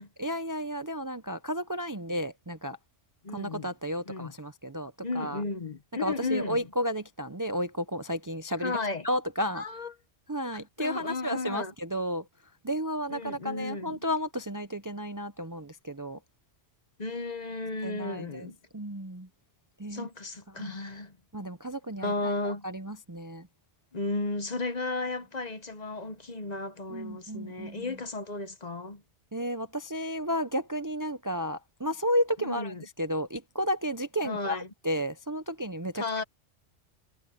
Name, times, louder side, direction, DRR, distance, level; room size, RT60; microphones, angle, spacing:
voice 1, 0.2-2.8 3.3-5.4 6.0-8.8 9.0-9.6 10.3-12.2 12.6-16.2 17.8-19.3 19.8-20.1 20.6-20.7 21.3-22.1 22.4-23.5 26.9-27.9 29.3-34.6 34.8-36.0, equal, 20° right, 0.6 m, -32 dB
voice 2, 3.2-3.7 4.1-4.3 5.0-6.7 8.6-9.1 9.5-9.9 10.5-11.7 13.1-14.0 17.0-18.5 19.9-21.1 22.0-22.6 23.9-29.0 32.4-32.9 34.2-34.7 36.0-36.2, left 3 dB, 40° left, 1.0 m, -34 dB
omnidirectional pair, 1.2 m